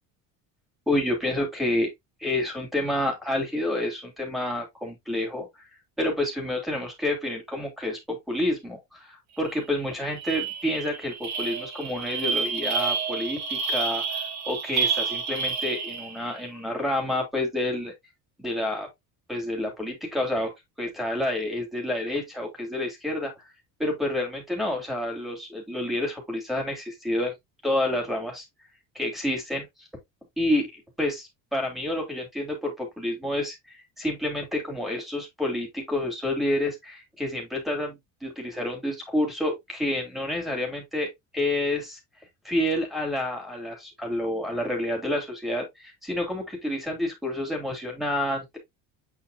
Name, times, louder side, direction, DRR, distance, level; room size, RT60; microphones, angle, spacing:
voice 1, 0.9-1.9 2.2-5.6 6.0-14.2 14.5-17.9 18.4-18.9 19.3-20.5 20.8-23.3 23.8-27.3 27.6-28.4 28.9-29.7 30.4-37.9 38.2-41.1 41.3-42.0 42.4-48.6, left 1 dB, ahead, 3.0 m, -29 dB
sound 1, 9.5-9.6 9.9-16.3, right 5 dB, 50° right, 2.1 m, -29 dB
8.5 x 4.8 x 2.6 m
cardioid pair, 170°, 35 cm